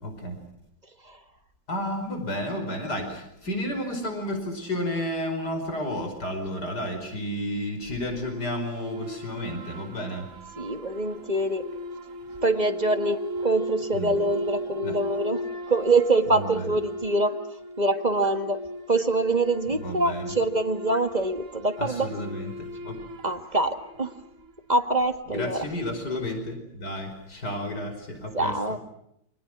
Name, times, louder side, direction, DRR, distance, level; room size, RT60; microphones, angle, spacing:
voice 1, 0.0-0.4 1.7-10.3 13.9-14.1 14.8-15.0 16.3-16.7 19.8-20.3 21.8-23.0 25.3-28.6, left 1 dB, 60° left, 6 dB, 5.7 m, -32 dB
sound 1, 8.1-24.7, equal, 45° right, 2.8 m, -37 dB
voice 2, 10.6-11.7 12.4-17.4 17.8-18.6 18.9-22.1 23.2-24.1 24.7-25.6 28.3-28.8, right 2 dB, 25° right, 8 dB, 1.7 m, -25 dB
29.5 x 25.5 x 6.2 m, 0.77 s
omnidirectional pair, 2.0 m